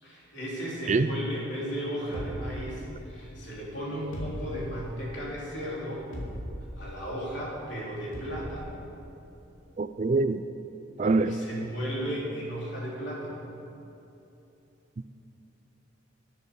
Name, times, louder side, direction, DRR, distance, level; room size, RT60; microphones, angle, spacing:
voice 1, 0.0-6.1 6.8-8.8 11.0-13.4, equal, 60° left, -5 dB, 3.6 m, -35 dB
sound 1, 2.1-3.2 4.1-5.0 6.1-6.8 8.1-8.6, equal, 80° left, 3.1 m, -38 dB
voice 2, 9.8-10.4 11.0-11.3, right 3 dB, 35° right, 11 dB, 0.3 m, -24 dB
12.0 x 9.4 x 7.0 m, 3.0 s
head